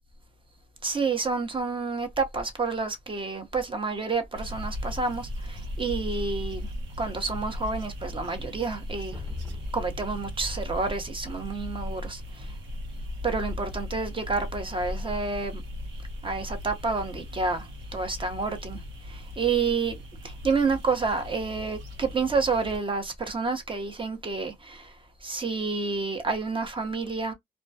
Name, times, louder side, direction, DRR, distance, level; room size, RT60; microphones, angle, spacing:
voice 1, 0.8-6.7 7.0-9.2 9.7-12.5 13.2-15.6 16.2-18.8 19.1-24.9 25.2-27.3, right 4 dB, 25° right, 0.7 m, -29 dB
sound 1, 4.4-22.8, left 1 dB, 75° right, 0.9 m, -37 dB
sound 2, 9.1-11.8, left 2 dB, 10° left, 0.5 m, -41 dB
2.2 x 2.1 x 2.6 m
cardioid pair, 90°, 20 cm